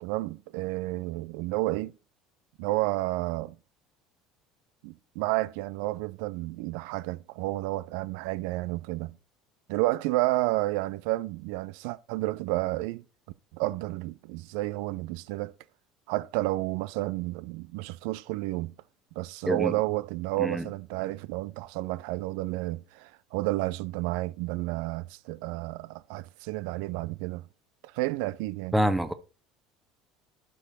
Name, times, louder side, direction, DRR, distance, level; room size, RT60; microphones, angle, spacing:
voice 1, 0.0-1.9 2.6-3.6 4.8-9.2 9.7-13.0 13.5-15.5 16.1-18.7 19.2-27.5 27.8-28.7, right 19 dB, 65° right, 0.4 m, -31 dB
voice 2, 28.7-29.1, right 1 dB, 10° right, 1.1 m, -25 dB
12.0 x 4.7 x 4.2 m
figure-of-eight pair, 65°, 0 cm